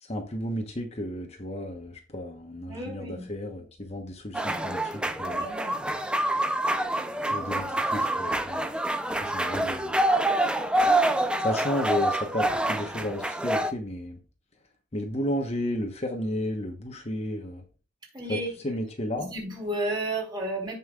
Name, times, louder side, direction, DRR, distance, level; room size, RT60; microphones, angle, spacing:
voice 1, 0.0-5.5 7.3-8.7 9.2-9.9 11.4-14.2 14.9-17.6 18.3-18.4 18.6-19.3, left 1 dB, 35° left, 3 dB, 1.1 m, -33 dB
voice 2, 2.6-3.3 5.2-5.7 18.1-18.5 19.2-20.8, right 1 dB, 25° right, -2 dB, 3.3 m, -32 dB
sound 1, 4.3-13.7, right 1 dB, 5° right, 0.5 m, -26 dB
16.5 x 5.5 x 2.4 m, 0.34 s
head